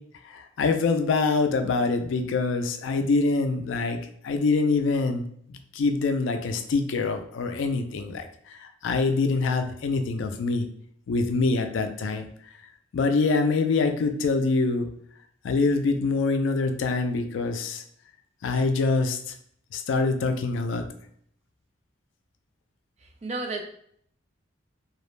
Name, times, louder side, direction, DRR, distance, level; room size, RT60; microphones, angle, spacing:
voice 1, 0.2-4.0 4.2-10.7 11.1-12.3 12.9-14.9 15.4-17.8 18.4-19.4 19.7-20.9, left 3 dB, 80° left, 7 dB, 0.3 m, -25 dB
voice 2, 23.0-23.6, right 3 dB, 35° right, 4 dB, 0.3 m, -32 dB
2.4 x 2.0 x 3.0 m, 0.65 s
head